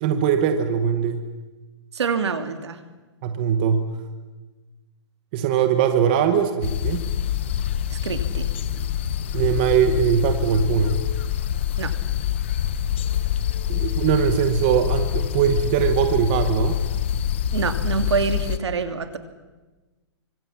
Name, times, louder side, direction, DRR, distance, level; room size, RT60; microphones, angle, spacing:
voice 1, 0.0-1.3 3.2-3.9 5.3-7.0 9.3-11.0 13.7-16.8, right 8 dB, 20° right, 7 dB, 1.0 m, -21 dB
voice 2, 1.9-2.8 7.9-8.5 11.8-11.9 17.5-19.2, right 5 dB, 65° right, 8 dB, 2.7 m, -26 dB
sound 1, 6.6-18.6, left 10 dB, 25° left, 0.9 m, -25 dB
25.5 x 25.0 x 7.3 m, 1.2 s
hypercardioid pair, 180°, 15 cm